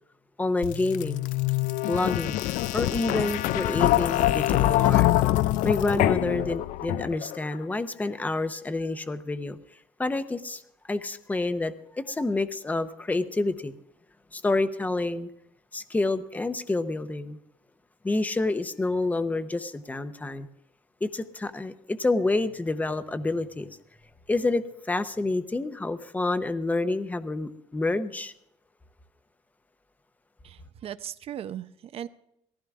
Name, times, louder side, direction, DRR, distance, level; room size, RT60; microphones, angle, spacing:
voice 1, 0.4-1.2 1.9-2.4 2.7-5.1 5.6-9.6 10.0-10.6 10.9-13.7 14.3-15.3 15.7-17.4 18.0-20.5 21.0-23.8 24.3-28.3, left 2 dB, 10° left, 11 dB, 0.8 m, -28 dB
sound 1, 0.6-7.4, left 15 dB, 90° left, 0.5 m, -24 dB
voice 2, 30.4-32.1, right 10 dB, 50° right, 13 dB, 0.7 m, -38 dB
18.5 x 15.0 x 3.6 m, 0.78 s
cardioid pair, 145°, 13 cm